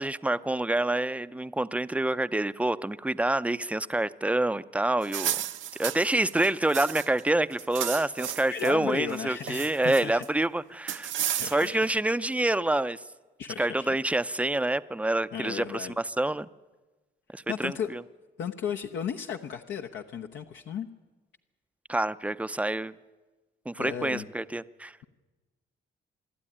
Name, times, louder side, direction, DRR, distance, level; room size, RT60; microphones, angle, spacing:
voice 1, 0.0-5.4 5.8-11.1 11.4-13.0 13.6-16.5 17.3-18.0 21.9-23.0 23.7-25.0, right 2 dB, 5° right, 0.6 m, -27 dB
sound 1, 5.0-7.2 7.5-8.7 9.1-10.3 10.9-11.8, right 11 dB, 75° right, 0.9 m, -33 dB
voice 2, 8.5-10.2 11.4-11.8 13.4-14.0 15.3-15.9 17.5-17.9 18.4-20.9 23.8-24.2, left 8 dB, 70° left, 1.0 m, -35 dB
24.5 x 12.5 x 10.0 m
cardioid pair, 90°, 20 cm